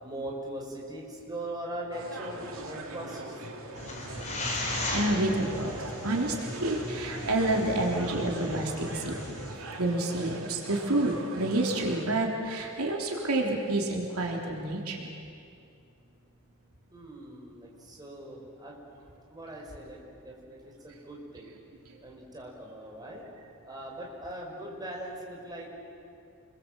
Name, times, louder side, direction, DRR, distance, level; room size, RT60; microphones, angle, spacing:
voice 1, 0.0-3.4 16.9-18.8 19.3-21.5 22.0-23.2 23.6-25.7, right 1 dB, 20° right, -2 dB, 4.8 m, -40 dB
sound 1, 1.9-12.1, right 2 dB, 70° right, 2.9 m, -41 dB
sound 2, 3.7-9.5, left 1 dB, 35° left, 5.0 m, -37 dB
voice 2, 4.7-9.2 9.8-15.1 21.8-22.0, right 1 dB, 85° right, 0 dB, 3.5 m, -29 dB
29.0 x 22.0 x 7.7 m, 2.5 s
head